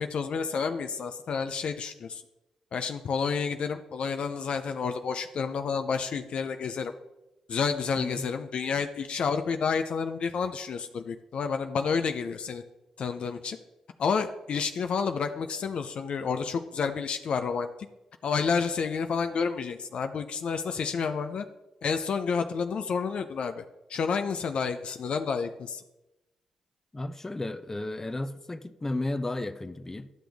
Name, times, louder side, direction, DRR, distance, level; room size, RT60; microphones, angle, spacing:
voice 1, 0.0-2.2 2.7-6.9 7.5-12.6 13.0-13.6 14.0-17.7 18.2-21.5 21.8-23.6 23.9-25.8, left 5 dB, 60° left, 0.5 m, -30 dB
voice 2, 8.0-8.3 26.9-30.1, left 2 dB, 20° left, 0.6 m, -33 dB
12.0 x 6.1 x 3.5 m
supercardioid pair, 50°, 2 cm